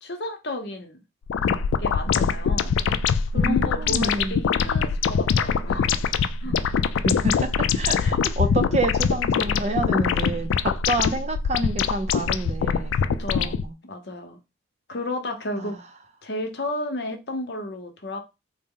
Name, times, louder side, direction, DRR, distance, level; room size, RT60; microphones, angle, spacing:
voice 1, 0.0-1.0 1.8-2.8 3.3-6.0 6.4-6.6 8.0-8.2 12.9-14.4 14.9-15.8 16.2-18.2, left 1 dB, 60° left, 0.8 m, -32 dB
sound 1, 1.3-13.7, left 6 dB, 85° left, 0.3 m, -23 dB
voice 2, 3.3-4.3 6.5-6.6 7.0-13.0 13.3-13.5 15.6-15.7, right 2 dB, 35° right, 0.4 m, -28 dB
3.9 x 2.0 x 3.7 m
head